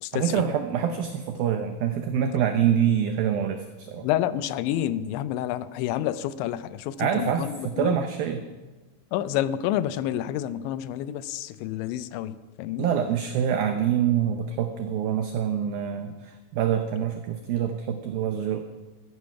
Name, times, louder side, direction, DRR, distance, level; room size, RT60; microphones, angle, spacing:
voice 1, 0.1-4.1 7.0-8.5 12.8-18.6, right 9 dB, 85° right, 7 dB, 2.1 m, -26 dB
voice 2, 4.0-8.0 9.1-12.9, left 12 dB, 85° left, 15 dB, 2.9 m, -29 dB
14.0 x 12.5 x 5.8 m, 1.3 s
omnidirectional pair, 5.2 m